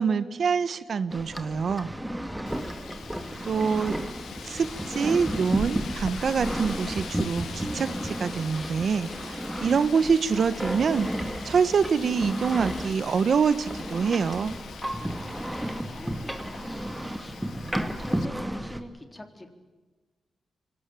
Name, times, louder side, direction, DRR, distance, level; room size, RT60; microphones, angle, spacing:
voice 1, 0.0-1.9 3.5-4.0 4.4-14.5, right 6 dB, 65° right, 13 dB, 1.1 m, -25 dB
sound 1, 1.1-18.8, right 1 dB, 5° right, 2.1 m, -33 dB
voice 2, 2.3-3.5 14.9-19.5, left 1 dB, 20° left, 6 dB, 3.9 m, -44 dB
Wind, 2.5-18.3, left 8 dB, 85° left, 1.0 m, -43 dB
sound 2, 4.4-9.4, right 2 dB, 35° right, 3.7 m, -49 dB
25.0 x 18.5 x 9.1 m, 1.3 s
cardioid pair, 80°, 0 cm